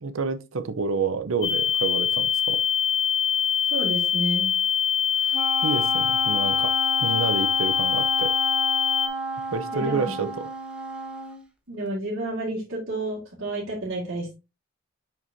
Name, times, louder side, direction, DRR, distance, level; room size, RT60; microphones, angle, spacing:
voice 1, 0.0-2.6 5.6-6.7 7.0-8.3 9.5-10.5, right 4 dB, 80° right, 0.7 m, -29 dB
sound 1, 1.4-9.1, left 8 dB, 65° left, 1.1 m, -23 dB
voice 2, 3.7-4.5 9.7-10.3 11.7-14.3, right 1 dB, 60° right, 2.1 m, -30 dB
Wind instrument woodwind instrument, 5.3-11.4, right 1 dB, 5° right, 0.9 m, -32 dB
6.0 x 6.0 x 2.7 m
head